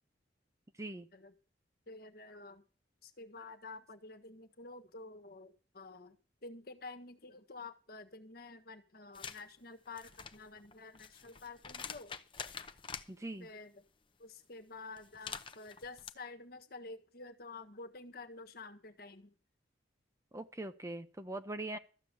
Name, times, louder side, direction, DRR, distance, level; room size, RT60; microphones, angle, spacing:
voice 1, 1.9-2.6 3.0-6.2 6.4-12.1 13.4-13.8 14.2-19.3, left 3 dB, 55° left, 1.5 m, -50 dB
sound 1, 9.1-9.4 9.9-13.1 15.0-16.1, left 6 dB, 30° left, 0.8 m, -46 dB
voice 2, 13.1-13.5 20.3-21.8, right 2 dB, 15° right, 0.7 m, -42 dB
13.5 x 7.9 x 6.8 m
head